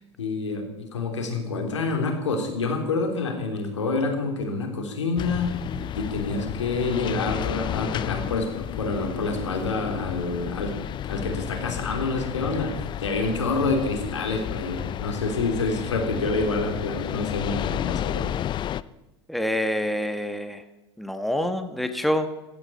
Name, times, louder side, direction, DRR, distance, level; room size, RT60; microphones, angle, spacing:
voice 1, 0.2-5.5 5.9-10.7 11.0-12.7 13.0-18.3, left 3 dB, 80° left, 4 dB, 3.3 m, -27 dB
sound 1, 5.2-18.8, left 11 dB, 30° left, 0.6 m, -32 dB
voice 2, 19.3-20.6 21.0-22.3, left 1 dB, ahead, 8 dB, 1.4 m, -26 dB
15.5 x 15.5 x 4.3 m, 1.0 s
hypercardioid pair, 85°, 15 cm